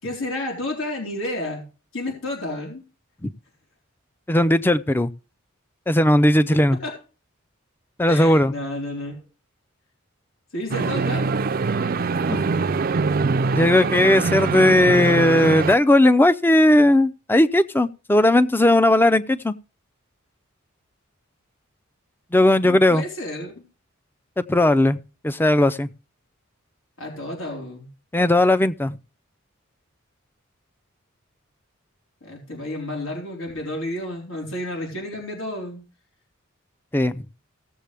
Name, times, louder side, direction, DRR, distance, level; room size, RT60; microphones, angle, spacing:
voice 1, 0.0-1.6 1.9-2.8 6.8-6.9 8.1-9.2 10.5-11.3 22.6-23.6 27.0-27.9 32.2-35.8, left 1 dB, 85° left, 4.1 m, -31 dB
voice 2, 4.3-5.1 5.9-6.8 8.0-8.5 12.3-12.4 13.5-19.5 22.3-23.0 24.4-25.0 25.2-25.9 28.1-29.0 36.9-37.2, left 1 dB, 10° left, 0.5 m, -17 dB
sound 1, 10.7-15.8, right 4 dB, 45° right, 0.5 m, -23 dB
17.0 x 7.4 x 3.4 m
head